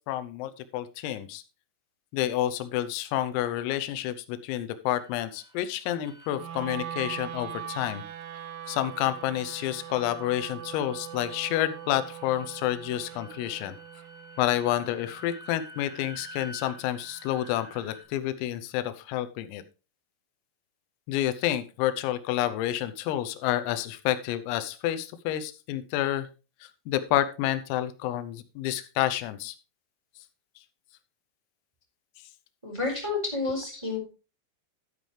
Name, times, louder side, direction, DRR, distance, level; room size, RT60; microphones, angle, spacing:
voice 1, 0.1-1.4 2.1-8.0 8.7-13.8 14.4-19.6 21.1-26.3 26.9-29.6, left 13 dB, 90° left, 12 dB, 3.5 m, -29 dB
sound 1, 4.8-18.0, equal, 60° right, 5.8 m, -50 dB
Wind instrument woodwind instrument, 6.3-16.5, right 10 dB, 85° right, 3.5 m, -42 dB
voice 2, 32.6-34.0, left 3 dB, 5° right, -2 dB, 4.0 m, -30 dB
12.5 x 9.2 x 3.3 m, 0.32 s
omnidirectional pair, 5.9 m